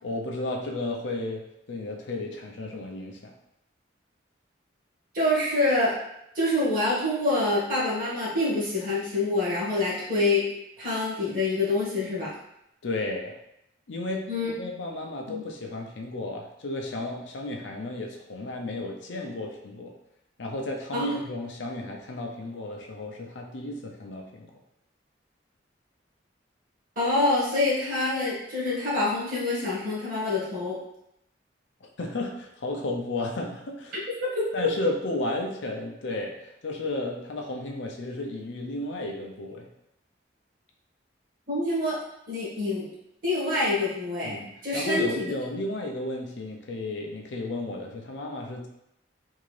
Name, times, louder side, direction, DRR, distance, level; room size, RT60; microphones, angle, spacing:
voice 1, 0.0-3.3 12.8-13.4 13.9-14.3 14.6-19.9 20.4-24.5 32.0-34.0 34.5-39.7 44.2-48.7, left 2 dB, 80° left, 1 dB, 0.6 m, -33 dB
voice 2, 5.1-5.9 6.3-10.5 10.8-12.3 14.3-14.5 15.3-15.4 20.9-21.3 26.9-30.8 34.3-34.7 41.5-42.0 42.3-42.9 43.2-45.3, left 2 dB, 50° right, -7 dB, 1.5 m, -26 dB
3.6 x 2.6 x 3.2 m, 0.82 s
head